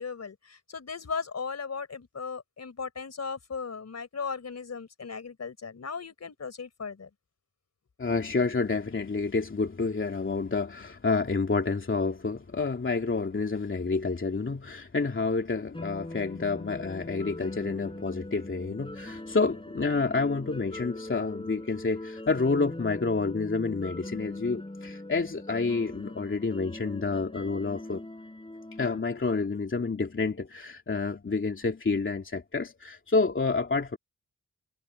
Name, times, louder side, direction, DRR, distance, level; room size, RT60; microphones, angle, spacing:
voice 1, 0.0-7.1, left 5 dB, 55° left, 4.2 m, -37 dB
voice 2, 8.0-28.0 28.8-34.0, left 4 dB, 40° left, 2.8 m, -29 dB
sound 1, 15.7-29.0, left 1 dB, 15° left, 4.6 m, -41 dB
cardioid pair, 50°, 31 cm